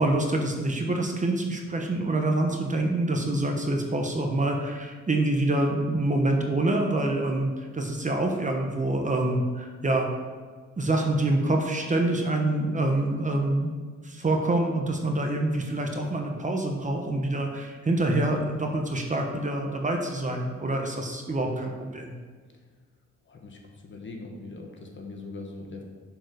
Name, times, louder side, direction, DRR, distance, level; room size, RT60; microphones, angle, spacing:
voice 1, 0.0-10.1 10.8-13.7 14.0-22.1, right 2 dB, 25° right, 2 dB, 1.1 m, -26 dB
voice 2, 23.2-25.8, left 3 dB, 40° left, 2 dB, 1.4 m, -41 dB
6.3 x 4.6 x 6.3 m, 1.5 s
cardioid pair, 90°, 30 cm